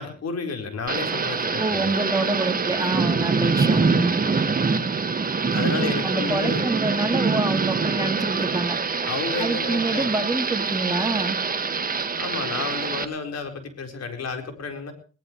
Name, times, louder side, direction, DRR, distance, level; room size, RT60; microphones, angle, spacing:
voice 1, 0.0-1.9 5.5-6.7 9.1-10.1 12.2-14.9, left 4 dB, 55° left, 6 dB, 4.4 m, -31 dB
Thunder / Rain, 0.9-13.0, right 4 dB, 30° right, 1.7 m, -24 dB
voice 2, 1.6-4.2 5.8-8.8 9.4-11.4, right 2 dB, 10° right, 6 dB, 2.2 m, -26 dB
22.0 x 18.0 x 3.2 m, 0.37 s
cardioid pair, 90°, 30 cm